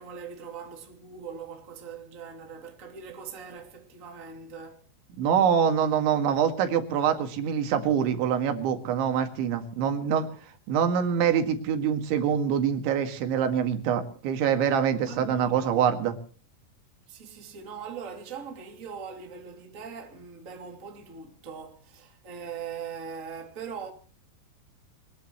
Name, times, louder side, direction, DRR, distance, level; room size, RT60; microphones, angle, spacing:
voice 1, 0.0-4.9 14.9-15.8 17.1-23.9, right 6 dB, 25° right, 2.1 m, -41 dB
voice 2, 5.2-10.3 10.7-16.2, right 8 dB, 90° right, 4.3 m, -25 dB
22.5 x 21.0 x 3.1 m
omnidirectional pair, 5.2 m